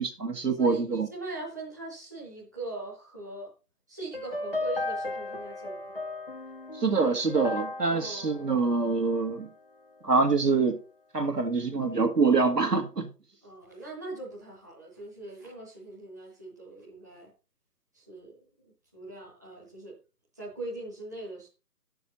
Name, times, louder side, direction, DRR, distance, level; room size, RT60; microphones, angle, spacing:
voice 1, 0.0-1.1 6.8-9.5 10.0-10.8 11.1-13.1, right 4 dB, 80° right, 2.1 m, -25 dB
voice 2, 0.6-3.5 3.9-5.9 7.9-8.7 13.4-17.3 17.9-19.9 20.4-21.5, right 2 dB, 10° right, 1.0 m, -41 dB
sound 1, 4.1-9.5, left 2 dB, 35° left, 0.7 m, -36 dB
10.5 x 7.0 x 4.0 m
figure-of-eight pair, 165°, 47 cm